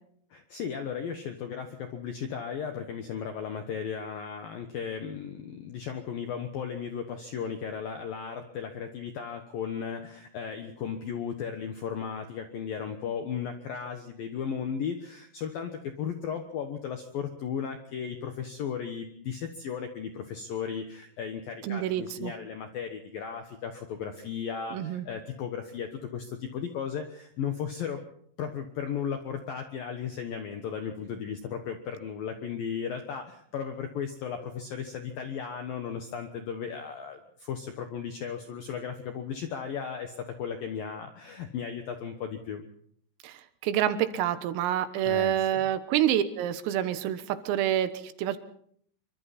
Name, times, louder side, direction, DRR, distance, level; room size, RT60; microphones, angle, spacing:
voice 1, 0.3-28.0 28.4-42.6 45.0-45.6, left 7 dB, 75° left, 6 dB, 2.1 m, -35 dB
voice 2, 21.6-22.3 24.7-25.1 43.2-48.4, right 11 dB, 80° right, 11 dB, 3.8 m, -28 dB
25.5 x 24.0 x 4.2 m, 0.63 s
omnidirectional pair, 6.0 m